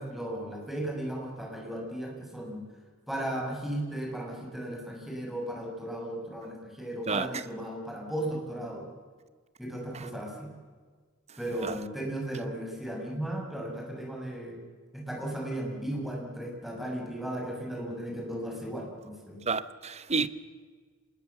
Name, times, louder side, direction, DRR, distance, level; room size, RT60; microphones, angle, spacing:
voice 1, 0.0-2.6 3.1-8.8 9.6-10.5 11.4-14.6 14.9-19.4, right 1 dB, ahead, 6.5 m, -36 dB
voice 2, 19.5-20.3, right 4 dB, 35° right, 1.0 m, -29 dB
26.0 x 20.5 x 7.2 m
head